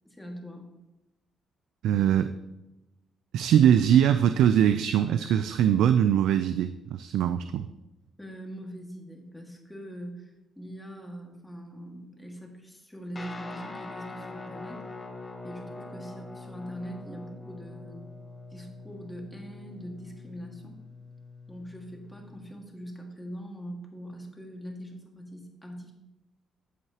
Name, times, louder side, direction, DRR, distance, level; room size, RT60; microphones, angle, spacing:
voice 1, 0.0-0.7 8.2-14.8 15.4-18.0 18.5-20.8 21.5-25.9, equal, 5° left, 0 dB, 1.9 m, -42 dB
voice 2, 1.8-2.3 3.3-7.7, right 9 dB, 80° right, 10 dB, 0.4 m, -22 dB
Guitar, 13.2-22.5, left 3 dB, 20° left, 1.2 m, -43 dB
12.5 x 7.9 x 2.9 m, 0.99 s
cardioid pair, 120°, 0 cm